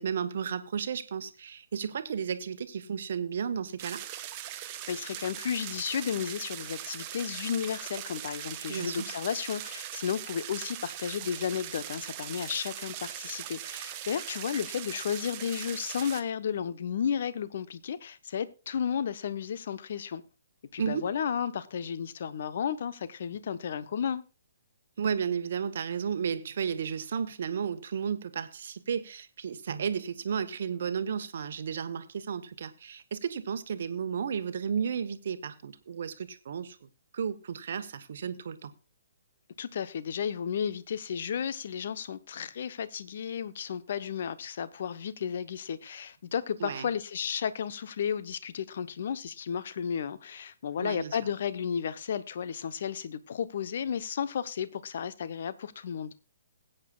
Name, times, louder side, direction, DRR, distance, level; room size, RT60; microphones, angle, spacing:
voice 1, 0.0-4.0 8.7-9.1 20.8-21.1 25.0-36.9 37.1-38.7 46.6-46.9 50.8-51.2, right 7 dB, 50° right, 1.1 m, -33 dB
sound 1, 3.8-16.2, right 12 dB, 30° right, 1.0 m, -40 dB
voice 2, 4.9-20.2 20.7-24.2 39.6-56.1, left 7 dB, 50° left, 0.8 m, -33 dB
20.0 x 8.9 x 2.4 m
figure-of-eight pair, 130°, 0 cm